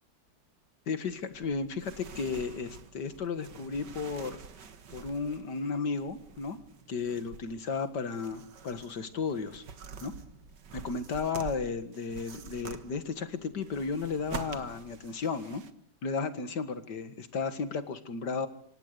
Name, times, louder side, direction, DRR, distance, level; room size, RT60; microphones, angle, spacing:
voice 1, 0.9-4.4 4.9-6.6 6.9-9.6 10.0-10.1 10.7-15.6 16.0-18.5, left 5 dB, 85° left, 11 dB, 2.4 m, -34 dB
sound 1, 1.0-15.7, right 6 dB, 90° right, 2.1 m, -47 dB
26.5 x 25.0 x 6.8 m, 0.64 s
omnidirectional pair, 1.8 m